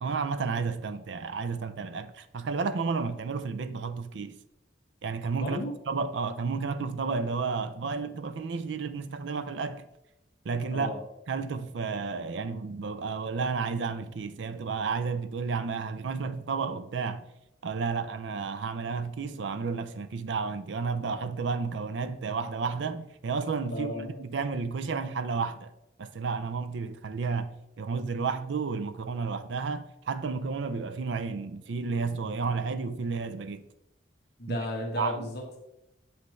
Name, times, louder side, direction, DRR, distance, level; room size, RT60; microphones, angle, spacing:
voice 1, 0.0-4.3 5.0-9.8 10.4-10.9 11.3-17.2 17.6-25.7 26.0-27.5 27.8-33.6 34.5-34.6 35.0-35.3, right 5 dB, 65° right, 0.4 m, -32 dB
voice 2, 5.4-5.8 10.7-11.0 23.7-24.1 34.4-35.6, left 1 dB, 60° left, 1.1 m, -34 dB
6.5 x 5.3 x 3.1 m
head